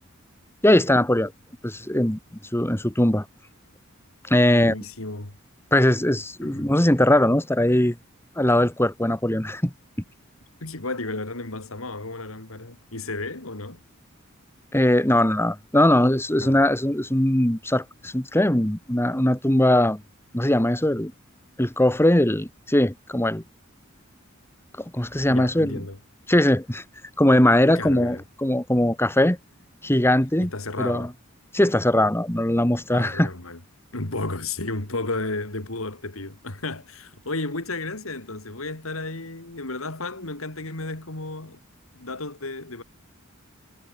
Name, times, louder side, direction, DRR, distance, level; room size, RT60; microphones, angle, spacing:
voice 1, 0.6-1.3 1.6-2.2 2.5-3.3 4.3-4.7 5.7-8.0 8.4-9.7 14.7-20.0 20.3-21.1 21.6-23.4 24.9-25.8 26.3-26.8 27.2-29.4 29.8-30.5 30.8-31.1 31.5-33.3, left 1 dB, 10° left, 1.9 m, -20 dB
voice 2, 4.4-5.3 6.4-6.7 10.6-13.8 16.4-16.6 25.3-26.0 27.7-28.2 30.4-31.1 32.9-33.6 33.9-41.6 41.9-42.8, left 2 dB, 75° left, 3.1 m, -33 dB
head